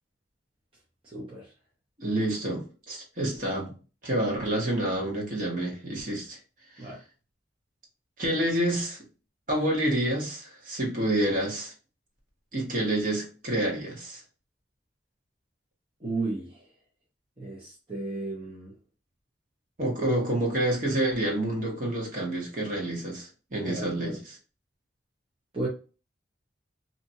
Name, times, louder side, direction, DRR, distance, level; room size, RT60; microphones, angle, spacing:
voice 1, 1.0-1.5 6.8-7.0 16.0-16.6 17.4-18.7 23.7-24.2 25.5-25.7, right 2 dB, 30° right, 0.8 m, -34 dB
voice 2, 2.0-3.7 4.0-6.4 6.8-6.9 8.2-9.0 9.5-11.7 12.5-14.2 19.8-24.3, right 1 dB, 50° right, 1.2 m, -28 dB
2.8 x 2.5 x 2.7 m
head